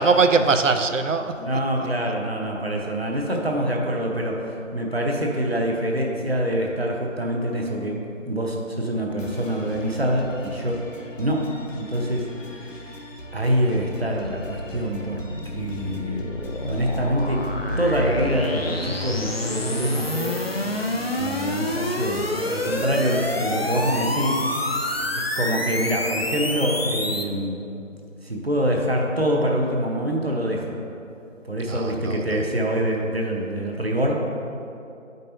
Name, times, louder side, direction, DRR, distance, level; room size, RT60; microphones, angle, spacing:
voice 1, 0.0-1.9 31.7-32.5, right 4 dB, 70° right, 8 dB, 0.6 m, -22 dB
voice 2, 1.4-4.4 4.7-8.0 8.3-10.8 11.2-13.0 13.3-15.2 15.5-16.3 16.6-17.4 17.8-20.4 21.2-24.5 25.4-27.6 28.2-30.7 31.4-34.1, equal, 50° right, 0 dB, 0.9 m, -25 dB
sound 1, 9.2-25.2, left 1 dB, 75° left, 1.0 m, -41 dB
sound 2, 14.2-27.2, left 1 dB, 50° left, 0.5 m, -28 dB
8.6 x 5.3 x 2.7 m, 2.6 s
figure-of-eight pair, 180°, 39 cm